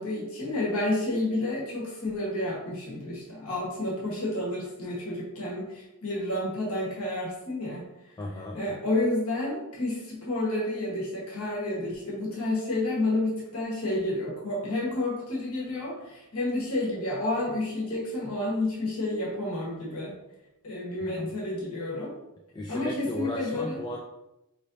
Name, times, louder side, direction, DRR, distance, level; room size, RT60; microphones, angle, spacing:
voice 1, 0.0-7.8 8.5-20.1 20.6-22.1 22.7-23.8, left 2 dB, 75° left, -4 dB, 1.4 m, -30 dB
voice 2, 8.2-8.6 21.0-21.3 22.5-24.0, equal, 20° left, 0 dB, 0.3 m, -35 dB
5.1 x 3.1 x 2.7 m, 0.91 s
head